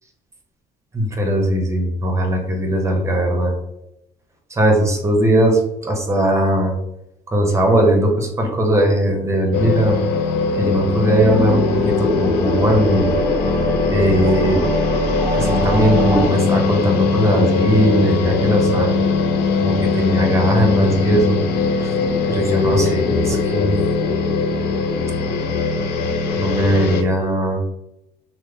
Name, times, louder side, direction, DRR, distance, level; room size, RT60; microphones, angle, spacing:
voice 1, 0.9-3.5 4.6-6.7 7.3-10.0 10.6-13.1 13.9-14.7 15.4-18.9 19.6-21.4 21.8-21.9 22.3-23.7 26.4-27.6, right 1 dB, 15° right, 2 dB, 0.8 m, -19 dB
sound 1, 9.5-27.0, left 4 dB, 70° left, 0.4 m, -20 dB
sound 2, 11.2-16.3, right 2 dB, 10° left, 0.8 m, -24 dB
3.0 x 2.1 x 3.5 m, 0.85 s
cardioid pair, 110°, 17 cm